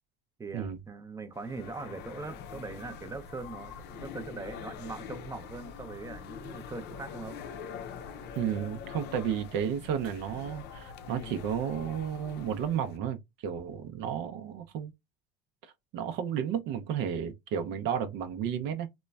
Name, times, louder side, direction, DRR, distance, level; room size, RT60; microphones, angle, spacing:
voice 1, 0.4-7.4 17.7-17.8, right 3 dB, 15° right, 0.5 m, -41 dB
sound 1, 1.3-13.0, left 7 dB, 55° left, 0.5 m, -44 dB
voice 2, 8.4-14.9 15.6-18.9, right 8 dB, 65° right, 0.5 m, -32 dB
3.0 x 2.1 x 2.2 m
supercardioid pair, 95°, 20 cm